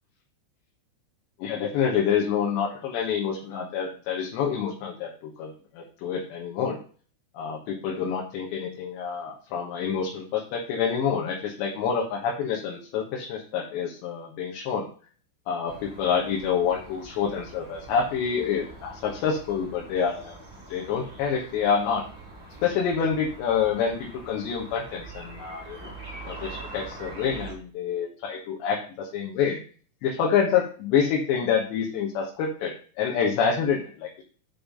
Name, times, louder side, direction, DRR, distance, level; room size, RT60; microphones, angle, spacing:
voice 1, 1.4-6.8 7.4-14.9 15.5-20.4 20.7-22.0 22.6-25.9 26.3-29.6 30.0-34.2, left 7 dB, 75° left, -1 dB, 3.4 m, -27 dB
sound 1, 15.7-27.6, right 3 dB, 10° right, 3.6 m, -44 dB
7.3 x 5.5 x 5.3 m, 0.42 s
omnidirectional pair, 5.2 m